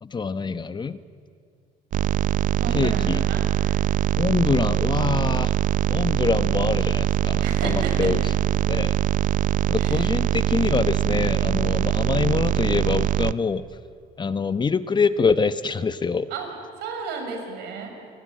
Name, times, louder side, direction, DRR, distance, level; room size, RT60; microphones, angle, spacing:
voice 1, 0.0-1.0 2.7-3.2 4.2-5.5 5.9-8.2 8.7-8.9 9.7-13.6 14.2-16.3, left 5 dB, 25° left, 13 dB, 0.9 m, -25 dB
sound 1, 1.9-13.3, right 11 dB, 50° right, 0.6 m, -23 dB
voice 2, 2.6-3.8 7.4-8.1 9.8-10.1 16.3-16.5 16.8-17.9, right 5 dB, 85° right, 4 dB, 6.0 m, -33 dB
29.0 x 19.5 x 9.3 m, 2.3 s
cardioid pair, 110°, 17 cm